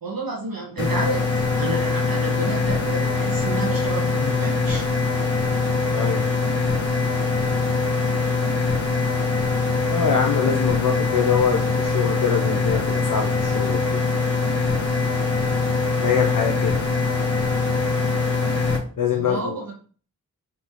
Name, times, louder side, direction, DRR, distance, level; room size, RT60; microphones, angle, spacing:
voice 1, 0.0-4.9 19.2-19.7, right 2 dB, 80° right, -1 dB, 1.4 m, -30 dB
sound 1, 0.8-18.8, left 4 dB, 45° left, 1.1 m, -23 dB
voice 2, 5.9-6.2 9.9-14.0 16.0-16.8 19.0-19.6, left 7 dB, 65° left, 1 dB, 0.6 m, -24 dB
4.2 x 3.4 x 2.9 m, 0.41 s
wide cardioid pair, 85°, 34 cm